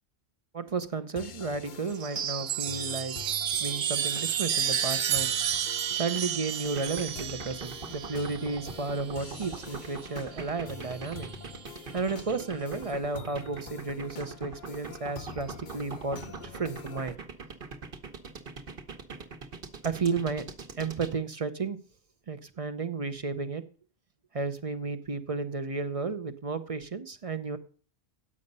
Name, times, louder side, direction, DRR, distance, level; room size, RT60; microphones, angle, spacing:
voice 1, 0.5-3.3 3.6-5.3 5.9-11.3 11.9-17.2 19.8-20.5 20.8-21.8 22.3-23.6 24.3-27.6, right 4 dB, 40° right, 12 dB, 0.6 m, -33 dB
sound 1, 1.2-17.2, left 7 dB, 50° left, 0.8 m, -46 dB
Chime, 1.9-9.7 11.0-11.6, right 9 dB, 85° right, 1.0 m, -31 dB
sound 2, 6.7-21.1, right 4 dB, 55° right, 1.3 m, -41 dB
9.6 x 8.7 x 5.3 m, 0.41 s
omnidirectional pair, 1.1 m